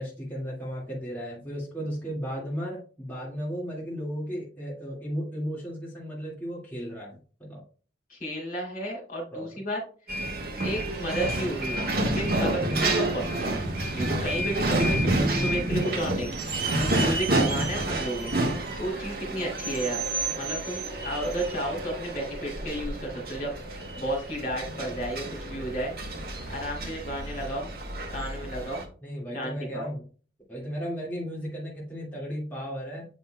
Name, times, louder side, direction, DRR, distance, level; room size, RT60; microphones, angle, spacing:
voice 1, 0.0-7.6 9.3-9.5 15.1-16.0 29.0-30.0 30.5-33.1, equal, 10° left, -6 dB, 1.9 m, -35 dB
voice 2, 8.1-9.8 10.6-13.6 13.9-16.3 16.8-18.3 18.8-20.1 20.4-23.6 24.0-25.9 26.5-27.7 28.1-28.8 29.3-29.9, right 1 dB, 45° left, 0 dB, 2.8 m, -32 dB
sound 1, 10.1-28.8, right 2 dB, 55° right, 1.4 m, -29 dB
8.0 x 5.4 x 2.2 m, 0.39 s
head